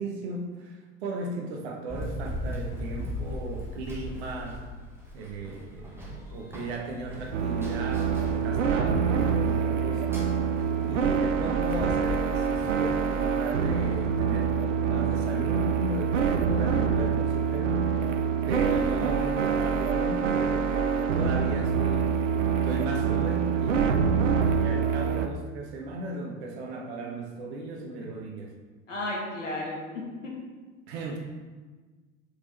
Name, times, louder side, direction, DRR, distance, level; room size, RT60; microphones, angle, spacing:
voice 1, 0.0-4.6 5.1-10.0 10.8-18.0 18.4-22.2 22.6-28.5 30.9-31.2, right 2 dB, 55° right, 1 dB, 1.2 m, -36 dB
Run, 1.9-13.3, equal, 5° right, 1.6 m, -38 dB
sound 1, 7.3-25.3, right 6 dB, 70° right, 0.6 m, -26 dB
voice 2, 10.6-11.0 28.9-30.3, left 1 dB, 75° left, -2 dB, 1.9 m, -34 dB
6.3 x 4.8 x 4.4 m, 1.3 s
figure-of-eight pair, 75°, 38 cm